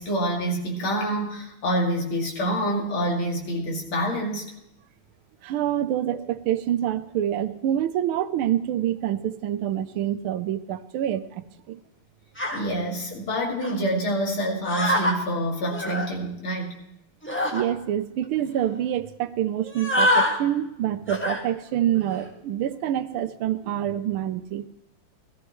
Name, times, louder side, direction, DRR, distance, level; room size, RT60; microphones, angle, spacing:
voice 1, 0.0-4.5 12.5-16.8, equal, 85° left, -1 dB, 3.3 m, -27 dB
voice 2, 5.4-11.8 17.5-24.7, right 11 dB, 90° right, 11 dB, 1.6 m, -26 dB
sound 1, 12.4-12.6 13.6-13.8 14.6-15.2 15.7-16.1 17.2-17.6 18.2-18.3 18.5-18.8 19.6-20.3 21.1-21.4 21.9-22.3, left 1 dB, 5° left, 1.3 m, -25 dB
18.0 x 14.0 x 3.1 m, 0.86 s
omnidirectional pair, 2.3 m